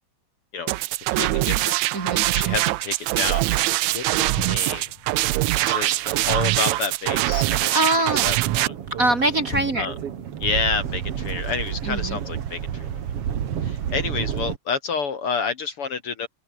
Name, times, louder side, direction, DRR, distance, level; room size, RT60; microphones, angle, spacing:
sound 1, 0.7-8.7, right 18 dB, 75° right, 1.9 m, -23 dB
voice 1, 1.1-1.8 2.3-4.8 5.5-8.7 9.8-9.9 10.4-13.0 13.6-16.3, left 5 dB, 50° left, 2.3 m, -29 dB
voice 2, 1.9-2.3 7.7-8.3 9.0-9.9 11.8-12.2, right 2 dB, 30° right, 2.3 m, -23 dB
Motor vehicle (road), 3.9-4.0 4.3-7.8 9.4-12.0 12.3-12.6, left 6 dB, 70° left, 4.8 m, -42 dB
sound 2, 8.2-14.6, right 9 dB, 55° right, 2.4 m, -30 dB
open air
omnidirectional pair, 3.5 m